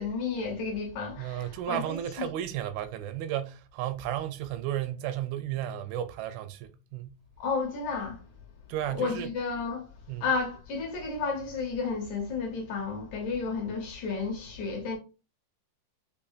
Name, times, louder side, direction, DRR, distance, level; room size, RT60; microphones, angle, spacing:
voice 1, 0.0-2.3 7.4-8.2 8.9-9.9 10.2-15.0, left 4 dB, 70° left, 2.0 m, -32 dB
voice 2, 1.2-7.2 8.7-9.3 10.1-10.3, right 11 dB, 85° right, 2.4 m, -33 dB
7.0 x 2.7 x 2.6 m
omnidirectional pair, 4.1 m